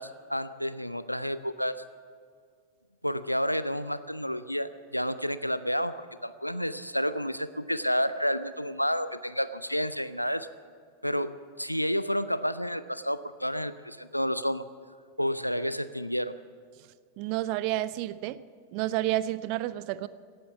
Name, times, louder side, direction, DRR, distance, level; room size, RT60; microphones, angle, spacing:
voice 1, 0.0-1.7 3.0-10.5 11.0-14.6 15.2-16.4, equal, 90° left, 14 dB, 0.5 m, -30 dB
voice 2, 17.2-18.4 18.7-20.1, right 15 dB, 45° right, 17 dB, 0.6 m, -30 dB
18.0 x 11.0 x 7.1 m, 2.1 s
figure-of-eight pair, 90°, 0 cm